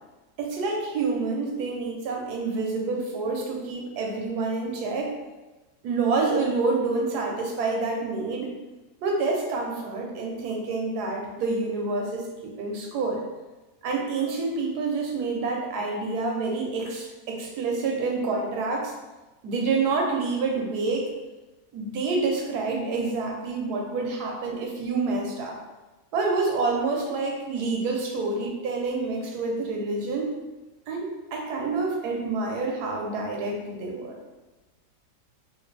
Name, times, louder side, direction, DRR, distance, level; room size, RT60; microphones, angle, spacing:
voice 1, 0.4-5.1 5.8-8.5 9.0-13.2 13.8-18.9 19.4-21.1 21.7-25.6 26.1-30.3 30.9-34.2, right 3 dB, 80° right, 0 dB, 1.2 m, -28 dB
3.2 x 2.9 x 3.2 m, 1.1 s
omnidirectional pair, 1.7 m